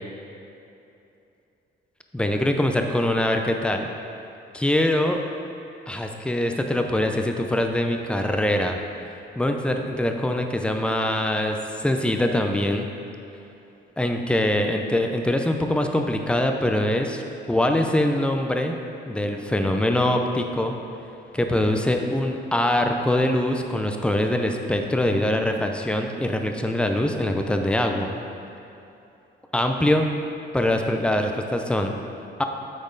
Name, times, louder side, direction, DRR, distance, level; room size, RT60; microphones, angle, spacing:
voice 1, 2.1-3.9 4.5-5.2 5.9-8.8 9.4-11.6 11.8-12.9 14.0-17.2 17.5-18.7 19.1-20.7 21.3-28.1 29.5-30.1 30.5-32.0 32.4-32.5, left 1 dB, 5° left, 4 dB, 0.5 m, -23 dB
8.4 x 4.3 x 3.8 m, 2.8 s
cardioid pair, 90°, 20 cm